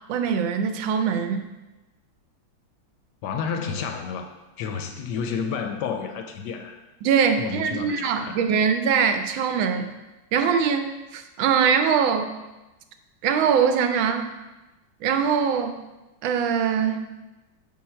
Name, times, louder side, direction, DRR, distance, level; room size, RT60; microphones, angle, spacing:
voice 1, 0.1-1.5 7.0-9.9 10.3-12.4 13.2-14.3 15.0-15.8 16.2-17.0, right 7 dB, 80° right, 7 dB, 1.4 m, -22 dB
voice 2, 3.2-4.2 4.6-6.8 7.4-8.4, left 6 dB, 75° left, 5 dB, 1.0 m, -30 dB
7.5 x 4.0 x 4.3 m, 1.1 s
omnidirectional pair, 2.1 m